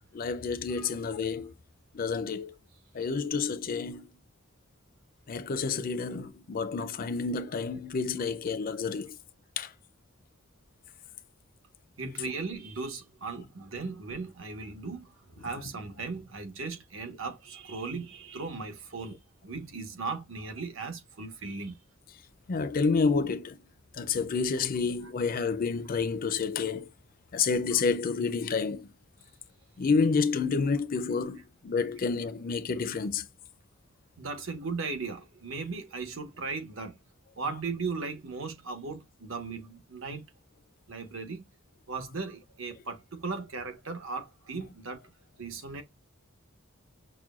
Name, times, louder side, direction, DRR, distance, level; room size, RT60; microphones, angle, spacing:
voice 1, 0.1-1.5 1.9-2.5 2.9-4.1 5.3-9.1 9.6-9.7 22.5-23.6 24.0-26.9 27.3-28.9 29.8-33.2, left 5 dB, 45° left, 0.4 m, -29 dB
voice 2, 12.0-21.8 25.0-25.1 27.7-27.8 34.2-37.0 37.4-40.2 40.9-41.4 41.9-45.0 45.4-45.8, right 4 dB, 70° right, 1.2 m, -37 dB
6.0 x 2.2 x 2.3 m
head